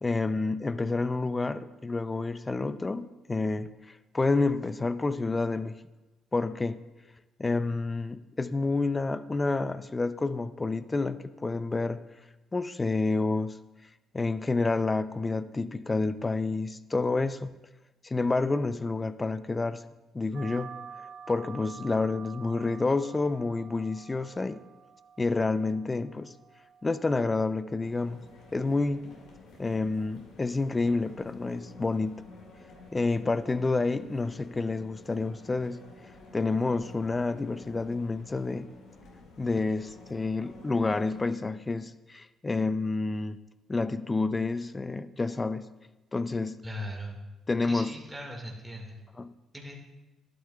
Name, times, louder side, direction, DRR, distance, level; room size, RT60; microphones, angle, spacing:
voice 1, 0.0-5.8 6.3-6.8 7.4-12.0 12.5-13.6 14.1-17.5 18.0-19.8 20.1-20.7 21.3-24.6 25.2-26.3 26.8-29.1 29.6-32.2 32.9-35.8 36.3-38.7 39.4-43.4 43.7-45.7 46.1-46.6 47.5-47.9 49.2-49.3, left 3 dB, 25° left, 14 dB, 0.4 m, -29 dB
sound 1, 20.3-29.4, right 7 dB, 70° right, 0.3 m, -49 dB
sound 2, 27.8-41.2, left 2 dB, 80° left, 2.0 m, -51 dB
voice 2, 46.6-47.2 47.6-49.0 49.5-49.8, equal, 5° right, -1 dB, 1.8 m, -39 dB
11.5 x 9.1 x 2.3 m, 1.1 s
supercardioid pair, 65°, 0 cm